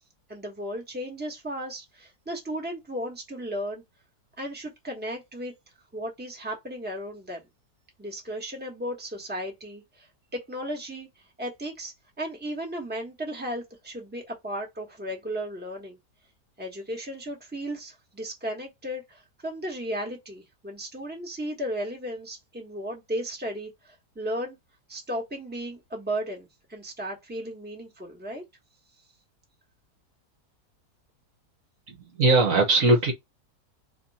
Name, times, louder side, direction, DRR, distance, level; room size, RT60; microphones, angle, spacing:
voice 1, 0.3-3.8 4.4-5.5 5.9-7.4 8.0-10.1 10.3-11.1 11.4-16.0 16.6-24.6 24.9-28.4, equal, 5° right, 1.3 m, -35 dB
voice 2, 31.9-33.1, right 2 dB, 60° right, 1.3 m, -20 dB
4.2 x 3.0 x 4.2 m
omnidirectional pair, 1.7 m